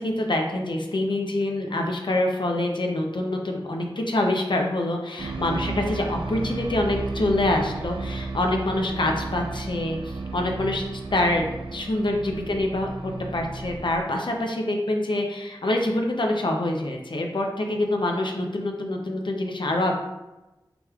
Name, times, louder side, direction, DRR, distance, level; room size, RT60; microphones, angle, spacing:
voice 1, 0.0-20.0, left 1 dB, 65° left, 2 dB, 0.6 m, -26 dB
sound 1, 5.2-14.0, right 3 dB, 80° right, 0.4 m, -33 dB
5.1 x 3.1 x 2.4 m, 1.0 s
wide cardioid pair, 50°, 9 cm